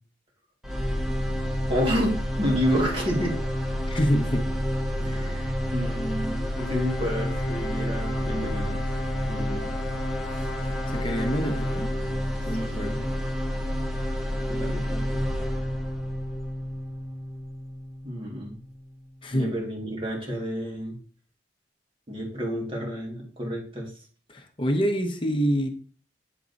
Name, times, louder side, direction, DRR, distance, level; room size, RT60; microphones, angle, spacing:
sound 1, 0.6-18.7, equal, ahead, 1.3 m, -29 dB
voice 1, 1.7-3.4 5.0-8.8 9.3-9.8 10.3-10.4 12.7-13.0 14.5-15.3 18.0-18.6 19.3-21.0 22.1-23.9, equal, 30° right, 2.1 m, -30 dB
voice 2, 3.9-4.5 10.9-11.9 12.4-13.0 19.2-19.5 24.3-25.7, equal, 30° left, 0.9 m, -26 dB
Bowed string instrument, 6.6-12.7, left 3 dB, 75° left, 1.0 m, -39 dB
8.8 x 3.8 x 4.0 m
head